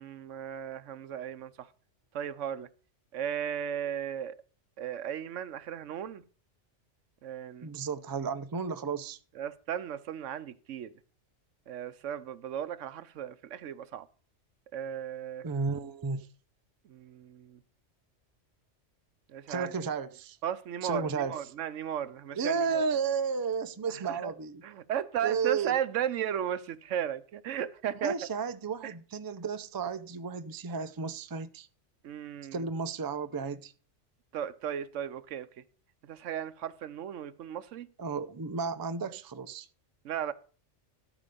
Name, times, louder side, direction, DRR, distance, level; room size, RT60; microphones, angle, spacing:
voice 1, 0.0-1.7 2.1-2.7 3.1-4.4 4.8-6.2 7.2-7.7 9.4-10.9 11.7-14.1 14.7-15.5 16.8-17.6 19.3-19.7 20.4-22.8 23.9-24.3 24.6-28.1 28.8-28.9 32.0-32.6 34.3-35.5 36.0-37.9 40.0-40.3, right 9 dB, 85° right, 1.1 m, -35 dB
voice 2, 7.6-9.2 15.4-16.3 19.5-20.4 20.8-21.4 22.3-24.6 25.2-25.8 28.0-31.7 32.5-33.7 38.0-39.7, right 5 dB, 30° right, 0.4 m, -33 dB
13.0 x 5.0 x 6.8 m
omnidirectional pair, 1.2 m